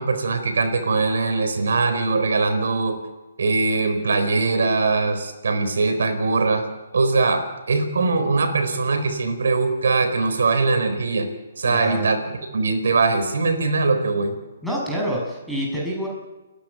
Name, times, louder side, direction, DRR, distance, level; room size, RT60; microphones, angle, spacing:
voice 1, 0.0-3.0 3.4-6.6 6.9-11.3 11.6-12.2 12.5-14.4, right 3 dB, 75° right, 7 dB, 4.4 m, -21 dB
voice 2, 11.6-12.0 14.6-16.1, equal, ahead, -5 dB, 6.6 m, -27 dB
29.5 x 11.5 x 9.4 m, 1.1 s
hypercardioid pair, 145°, 0 cm